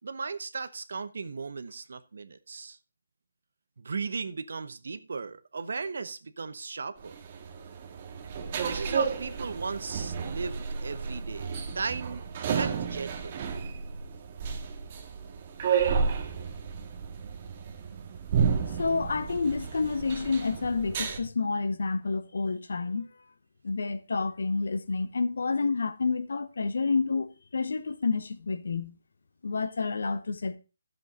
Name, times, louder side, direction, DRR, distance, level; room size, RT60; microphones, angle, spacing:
voice 1, 0.0-2.8 3.8-7.2 8.6-12.2 12.5-13.3, right 4 dB, 60° right, 0.9 m, -36 dB
sound 1, 7.0-21.2, right 6 dB, 35° right, 1.7 m, -32 dB
voice 2, 18.8-23.1 23.6-28.9 29.4-30.6, left 4 dB, 65° left, 1.1 m, -29 dB
12.0 x 7.8 x 3.8 m
figure-of-eight pair, 150°, 0 cm